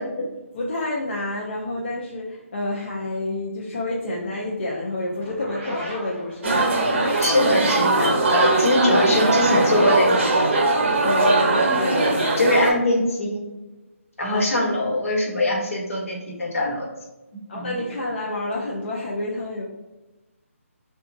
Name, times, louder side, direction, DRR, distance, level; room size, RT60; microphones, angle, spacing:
voice 1, 0.2-6.8 11.0-12.1 14.3-14.5 17.5-19.6, left 2 dB, 45° left, -4 dB, 0.5 m, -29 dB
sound 1, 5.2-11.0, equal, 30° right, 1.2 m, -35 dB
sound 2, 6.4-12.7, right 2 dB, 50° right, 0.7 m, -20 dB
voice 2, 7.2-10.3 12.4-13.4 14.2-16.9 17.5-17.8, left 1 dB, 70° left, -1 dB, 1.1 m, -22 dB
3.7 x 2.3 x 2.6 m, 1.1 s
hypercardioid pair, 165°, 8 cm